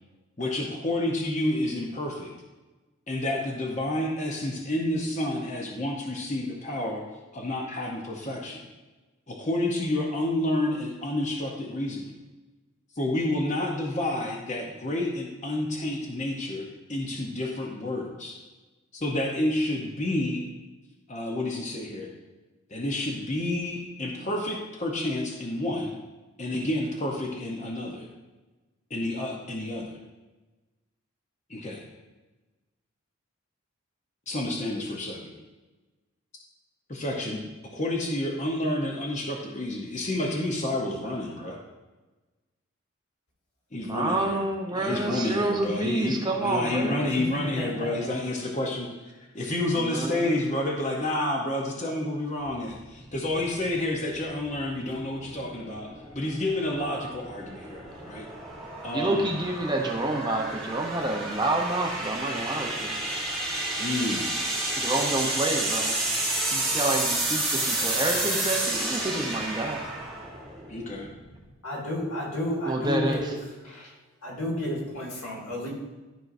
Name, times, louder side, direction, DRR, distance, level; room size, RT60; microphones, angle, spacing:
voice 1, 0.4-2.3 3.1-7.0 7.3-8.7 9.3-12.1 13.0-18.4 18.9-20.4 21.1-22.1 22.7-25.9 26.4-28.1 28.9-29.9 31.5-31.8 34.3-35.3 36.9-41.6 43.7-44.4 44.7-48.9 49.3-58.3 58.8-59.2 63.8-64.4 70.7-71.1, left 1 dB, 35° left, 0 dB, 0.8 m, -29 dB
voice 2, 43.7-47.2 49.7-50.5 58.9-63.0 64.8-66.0 66.5-69.9 72.7-73.3, right 2 dB, 20° right, 1 dB, 0.7 m, -28 dB
voice 3, 47.3-48.1 71.6-73.4 73.6-73.9 74.2-75.7, left 1 dB, 85° left, -3 dB, 2.1 m, -32 dB
sound 1, 52.5-71.5, right 2 dB, ahead, 1.3 m, -31 dB
12.5 x 4.5 x 2.6 m, 1.2 s
head